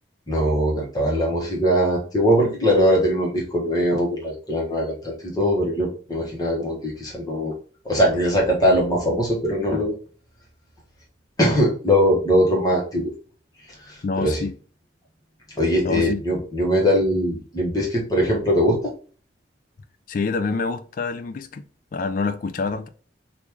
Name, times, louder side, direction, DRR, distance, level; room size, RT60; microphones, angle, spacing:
voice 1, 0.3-7.5 7.8-9.9 11.4-13.0 13.9-14.5 15.6-18.9, equal, 20° left, 1.1 m, -21 dB
voice 2, 14.0-14.5 15.8-16.2 20.1-21.6 21.9-22.9, left 4 dB, 45° left, 0.3 m, -26 dB
3.1 x 2.5 x 3.4 m
head